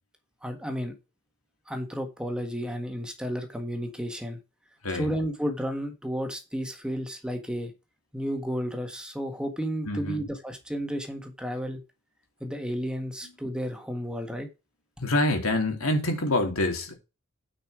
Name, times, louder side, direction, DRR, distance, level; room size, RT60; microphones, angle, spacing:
voice 1, 0.4-0.9 1.7-4.4 4.9-7.7 8.1-11.8 12.4-14.5, equal, 5° right, 1.5 m, -32 dB
voice 2, 9.9-10.2 15.0-16.9, left 1 dB, 85° left, 3.0 m, -26 dB
9.3 x 5.5 x 4.9 m
head